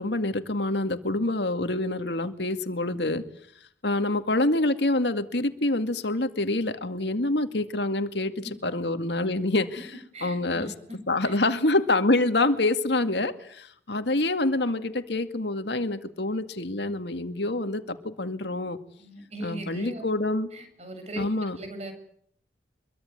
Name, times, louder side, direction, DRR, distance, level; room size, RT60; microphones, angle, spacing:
voice 1, 0.0-3.2 3.8-9.9 10.2-10.7 11.1-18.8 19.4-20.5 21.2-21.6, left 2 dB, 70° left, 9 dB, 2.1 m, -26 dB
voice 2, 10.1-11.0 11.2-11.4 16.9-17.0 19.0-20.0 20.5-21.9, right 1 dB, 35° right, 6 dB, 7.8 m, -39 dB
25.5 x 23.0 x 9.6 m, 0.66 s
head